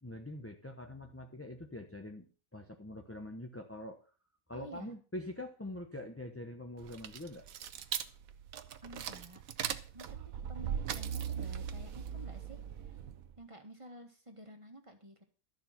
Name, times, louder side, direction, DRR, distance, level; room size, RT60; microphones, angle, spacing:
voice 1, 0.0-2.3 2.5-4.0 4.5-7.5, left 1 dB, 10° left, 4 dB, 0.9 m, -44 dB
voice 2, 4.5-4.9 8.8-9.4 9.9-13.0 13.4-15.2, equal, 20° right, 5 dB, 1.7 m, -51 dB
sound 1, 6.8-13.4, right 8 dB, 70° right, 1.2 m, -39 dB
13.0 x 7.0 x 5.9 m, 0.37 s
omnidirectional pair, 1.5 m